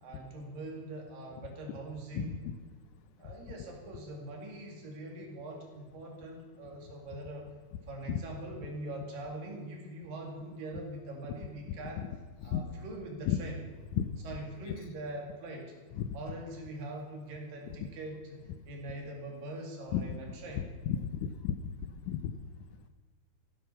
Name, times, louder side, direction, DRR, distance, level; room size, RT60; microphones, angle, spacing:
voice 1, 0.0-2.3 3.2-7.5 7.9-12.1 12.4-13.6 14.2-15.7 16.1-20.6, right 2 dB, 75° right, 1 dB, 4.1 m, -43 dB
voice 2, 20.9-21.6 22.1-22.3, left 10 dB, 75° left, 9 dB, 2.0 m, -32 dB
15.5 x 11.5 x 5.7 m, 1.4 s
omnidirectional pair, 4.1 m